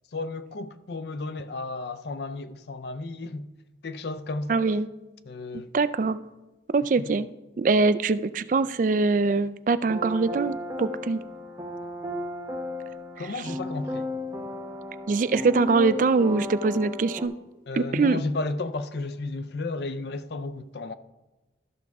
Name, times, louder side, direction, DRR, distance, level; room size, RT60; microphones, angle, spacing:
voice 1, 0.1-3.5 3.8-4.6 5.3-5.7 13.2-14.1 17.7-20.9, left 3 dB, 65° left, 0.5 m, -33 dB
voice 2, 4.5-4.9 5.7-6.2 6.7-7.3 7.6-11.2 13.2-13.5 15.1-17.3 17.7-18.2, right 4 dB, 45° right, 0.3 m, -23 dB
sound 1, 9.8-17.3, left 1 dB, 20° right, 0.8 m, -35 dB
13.5 x 5.9 x 3.5 m
head